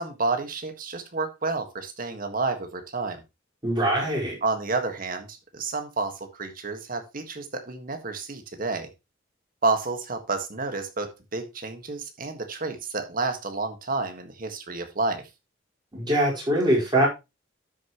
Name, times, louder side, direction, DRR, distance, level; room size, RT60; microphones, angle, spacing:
voice 1, 0.0-3.2 4.4-8.9 9.6-15.2, right 3 dB, 45° right, 7 dB, 1.6 m, -30 dB
voice 2, 3.6-4.3 15.9-17.1, right 1 dB, 25° right, -4 dB, 4.5 m, -22 dB
12.0 x 6.7 x 3.0 m, 0.24 s
head